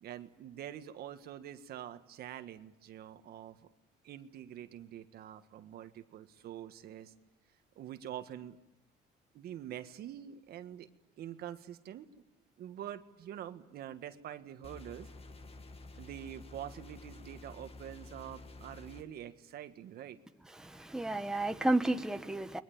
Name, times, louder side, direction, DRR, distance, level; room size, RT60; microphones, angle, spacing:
voice 1, 0.0-3.6 4.0-7.1 7.7-8.6 9.3-10.9 11.2-12.2 12.6-15.1 16.0-20.2, right 11 dB, 65° right, 9 dB, 1.7 m, -46 dB
sound 1, 14.6-19.0, left 2 dB, 35° left, 2.2 m, -50 dB
voice 2, 20.5-22.6, right 2 dB, 5° right, 7 dB, 1.3 m, -32 dB
29.5 x 22.0 x 8.8 m, 0.88 s
cardioid pair, 110°, 17 cm